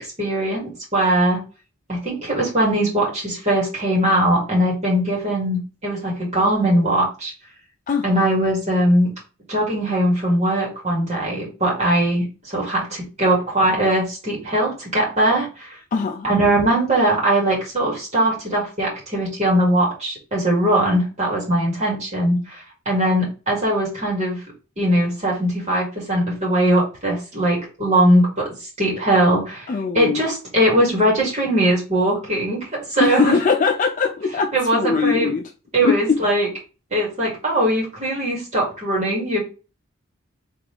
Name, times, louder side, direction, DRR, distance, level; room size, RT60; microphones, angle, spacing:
voice 1, 0.0-1.4 1.9-7.3 8.0-9.1 9.5-15.8 16.2-24.4 24.8-33.4 34.5-35.3 35.7-36.5 36.9-39.4, right 1 dB, 35° right, 2.4 m, -20 dB
voice 2, 15.9-16.3 29.7-30.2 33.0-35.4 35.8-36.2, left 5 dB, 40° left, 0.3 m, -21 dB
4.0 x 3.4 x 3.3 m
head